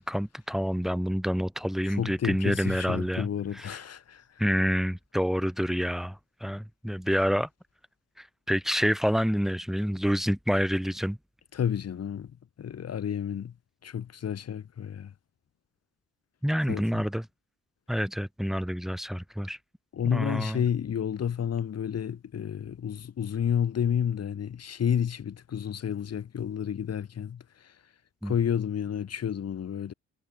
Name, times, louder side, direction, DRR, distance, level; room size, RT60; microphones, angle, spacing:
voice 1, 0.0-3.3 3.5-3.8 4.4-7.5 8.2-11.2 16.4-17.3 17.9-19.6 20.0-20.6 28.2-28.3, equal, ahead, 3.6 m, -28 dB
voice 2, 1.9-4.4 11.5-12.3 12.6-13.5 13.8-15.1 16.7-17.1 19.9-27.7 28.2-29.9, left 8 dB, 55° left, 4.1 m, -30 dB
cardioid pair, 90°, 30 cm